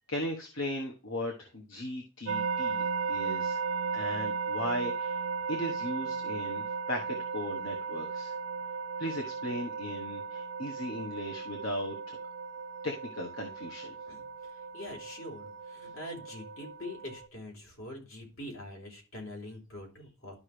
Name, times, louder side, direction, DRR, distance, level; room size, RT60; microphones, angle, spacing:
voice 1, 0.1-3.6 3.9-8.3 9.0-12.2 12.8-14.0, left 1 dB, 70° left, 2 dB, 1.3 m, -37 dB
sound 1, 2.3-17.3, right 5 dB, 70° right, 0.4 m, -36 dB
voice 2, 14.7-20.3, left 1 dB, 85° left, 0 dB, 3.8 m, -44 dB
12.0 x 5.6 x 3.3 m, 0.33 s
head